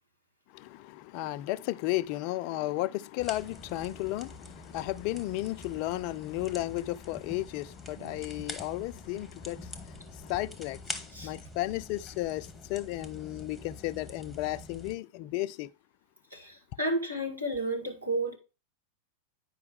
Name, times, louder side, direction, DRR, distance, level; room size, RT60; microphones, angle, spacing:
voice 1, 0.5-15.7, left 16 dB, 45° left, 0.4 m, -34 dB
sound 1, 3.2-15.0, left 2 dB, 5° left, 1.0 m, -45 dB
voice 2, 8.0-8.4 11.1-11.3 16.3-18.4, right 1 dB, 85° right, 1.9 m, -32 dB
9.6 x 5.0 x 3.3 m
figure-of-eight pair, 90°, 0 cm